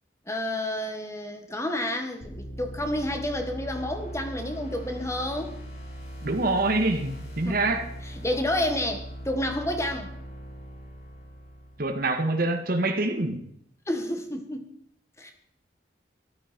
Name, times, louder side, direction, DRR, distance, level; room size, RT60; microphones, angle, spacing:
voice 1, 0.3-5.6 7.4-10.1 13.9-14.7 15.2-15.3, left 1 dB, 15° left, 5 dB, 1.7 m, -30 dB
sound 1, 2.2-12.0, equal, 55° left, 7.9 m, -40 dB
voice 2, 6.2-7.9 11.8-13.5, right 2 dB, 55° right, 6 dB, 1.8 m, -25 dB
14.0 x 12.5 x 5.3 m, 0.68 s
head